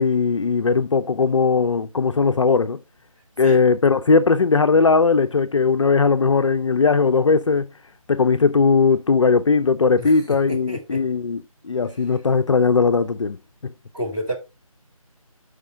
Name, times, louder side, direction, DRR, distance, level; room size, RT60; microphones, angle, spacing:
voice 1, 0.0-2.8 3.4-7.7 8.1-13.4 13.6-13.7, left 4 dB, 55° left, 0.4 m, -18 dB
voice 2, 10.5-11.0 13.9-14.3, equal, 10° right, 3.0 m, -29 dB
5.0 x 4.9 x 4.7 m
figure-of-eight pair, 165°, 19 cm